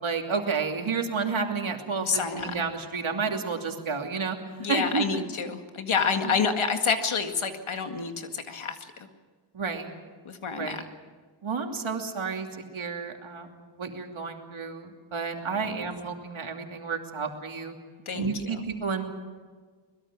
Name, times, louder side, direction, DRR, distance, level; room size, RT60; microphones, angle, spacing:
voice 1, 0.0-4.4 4.7-5.2 6.2-6.3 9.5-9.9 10.5-10.8 11.4-12.5 12.7-17.7 18.1-19.0, right 5 dB, 80° right, 3 dB, 2.9 m, -31 dB
voice 2, 2.0-2.5 4.6-9.1 10.3-10.8 15.5-15.8 18.1-18.6, left 5 dB, 85° left, 6 dB, 2.0 m, -28 dB
23.5 x 21.0 x 6.3 m, 1.5 s
wide cardioid pair, 65°, 47 cm